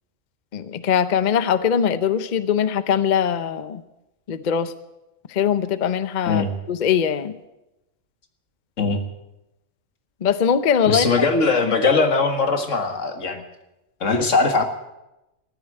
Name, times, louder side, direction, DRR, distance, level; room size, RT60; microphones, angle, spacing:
voice 1, 0.5-3.8 4.3-4.7 5.3-6.4 6.7-7.4 10.2-11.1 11.6-11.7, left 8 dB, 45° left, 13 dB, 0.7 m, -21 dB
voice 2, 10.9-13.4 14.0-14.6, left 4 dB, 80° left, 6 dB, 2.0 m, -20 dB
14.5 x 10.0 x 9.9 m, 0.96 s
omnidirectional pair, 1.3 m